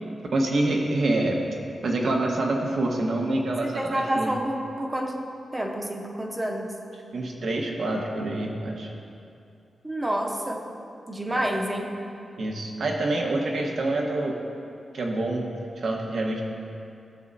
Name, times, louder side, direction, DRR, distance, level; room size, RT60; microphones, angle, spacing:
voice 1, 0.3-1.4 1.8-4.3 7.1-8.9 12.4-14.3 14.9-16.4, right 2 dB, 60° right, 0 dB, 1.2 m, -26 dB
voice 2, 3.5-5.2 5.5-6.7 9.8-10.6 11.1-11.9, right 1 dB, 15° right, 1 dB, 0.9 m, -29 dB
16.0 x 7.4 x 2.7 m, 2.6 s
wide cardioid pair, 145°, 0 cm